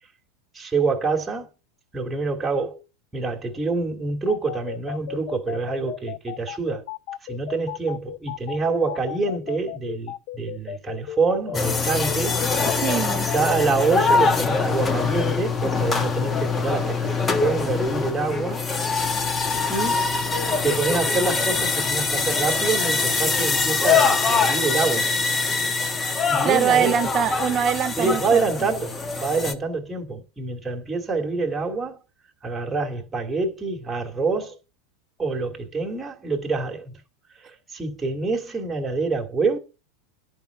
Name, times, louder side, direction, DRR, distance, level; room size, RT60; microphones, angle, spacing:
voice 1, 0.5-1.5 1.9-2.8 3.1-6.9 7.3-12.4 12.6-12.8 13.3-17.0 17.4-18.6 19.7-20.1 20.6-25.1 26.3-26.9 28.0-32.0 32.4-34.6 35.2-37.0 37.4-39.6, right 4 dB, 10° right, 2.0 m, -26 dB
sound 1, 4.3-14.2, left 14 dB, 60° left, 0.5 m, -34 dB
sound 2, 11.5-29.5, left 4 dB, 25° left, 1.1 m, -23 dB
voice 2, 12.8-13.3 26.4-28.4, right 9 dB, 35° right, 0.8 m, -23 dB
10.5 x 4.7 x 7.9 m
hypercardioid pair, 110°, 0 cm